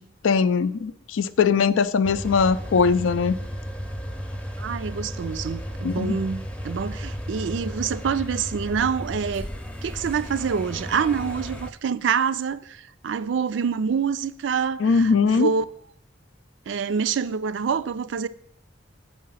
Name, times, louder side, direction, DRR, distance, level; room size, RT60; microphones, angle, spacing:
voice 1, 0.2-3.4 5.8-6.2 14.8-15.5, left 5 dB, 85° left, 0.4 m, -21 dB
sound 1, 2.0-11.7, equal, 5° left, 0.6 m, -34 dB
voice 2, 4.6-9.5 9.8-15.7 16.7-18.3, right 6 dB, 70° right, 0.4 m, -26 dB
7.4 x 4.8 x 5.6 m
head